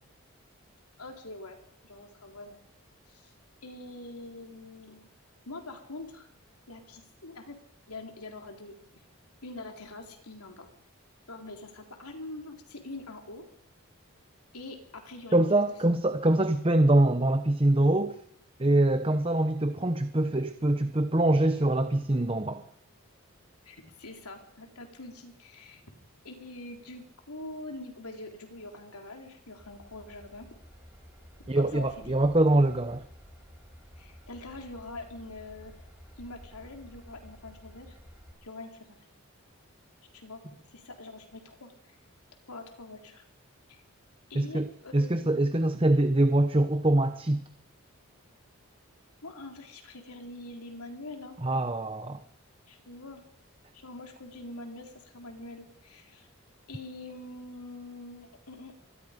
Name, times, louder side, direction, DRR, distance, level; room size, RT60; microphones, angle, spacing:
voice 1, 1.0-1.6 1.8-2.6 3.1-3.3 3.6-5.1 5.5-6.3 6.7-7.6 7.9-9.0 9.4-10.7 11.3-13.5 14.5-16.0 23.6-25.8 26.2-30.5 31.6-32.1 34.0-35.8 36.2-38.0 38.4-39.0 40.1-40.4 40.7-41.9 42.5-43.3 43.7-43.8 44.3-45.3 49.2-51.4 52.7-53.2 53.7-56.3 56.7-58.7, left 2 dB, 90° left, 3.9 m, -44 dB
voice 2, 15.3-18.2 18.6-22.6 31.5-33.1 44.3-44.7 44.9-47.4 51.4-52.2, right 1 dB, 25° right, 0.9 m, -24 dB
Train / Engine, 29.6-38.3, equal, 5° right, 5.4 m, -52 dB
25.0 x 20.0 x 5.2 m
head